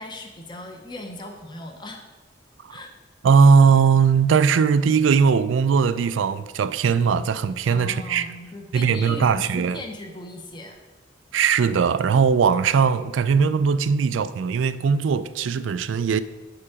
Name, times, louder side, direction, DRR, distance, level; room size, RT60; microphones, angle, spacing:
voice 1, 0.0-2.1 2.7-2.9 7.7-10.8, left 1 dB, 25° left, 0.7 m, -38 dB
voice 2, 3.2-8.3 8.7-9.8 11.3-16.2, right 6 dB, 90° right, 0.4 m, -19 dB
8.4 x 4.8 x 4.9 m
head